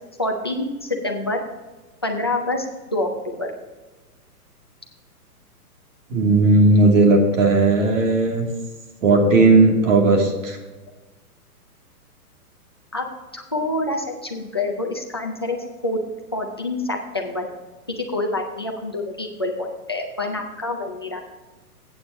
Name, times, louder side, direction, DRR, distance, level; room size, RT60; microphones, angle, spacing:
voice 1, 0.2-1.4 2.0-2.7 2.9-3.5 12.9-13.0 13.3-15.6 15.8-16.0 16.3-17.5 18.0-21.2, left 2 dB, 20° left, 1 dB, 0.4 m, -26 dB
voice 2, 6.1-8.4 9.0-10.6, right 3 dB, 55° right, 1 dB, 2.9 m, -16 dB
14.5 x 8.7 x 3.0 m, 1.2 s
hypercardioid pair, 160°, 46 cm